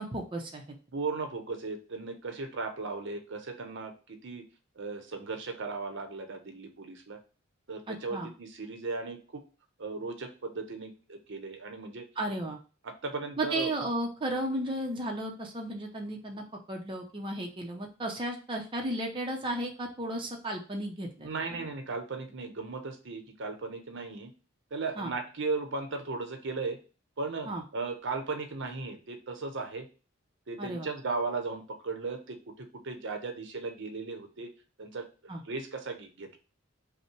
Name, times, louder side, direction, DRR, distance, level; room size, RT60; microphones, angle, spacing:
voice 1, 0.0-0.8 7.9-8.3 12.2-12.6 13.4-21.7 25.0-25.1 27.5-27.6 30.6-30.9 35.3-35.4, right 1 dB, 25° right, 1 dB, 0.6 m, -34 dB
voice 2, 0.9-4.4 4.8-7.2 7.7-9.2 9.8-12.1 12.8-13.7 21.2-24.3 24.7-26.8 27.2-29.9 30.5-34.5 34.8-35.0 35.4-36.4, right 3 dB, 65° right, 6 dB, 0.8 m, -36 dB
5.5 x 2.2 x 4.5 m, 0.34 s
head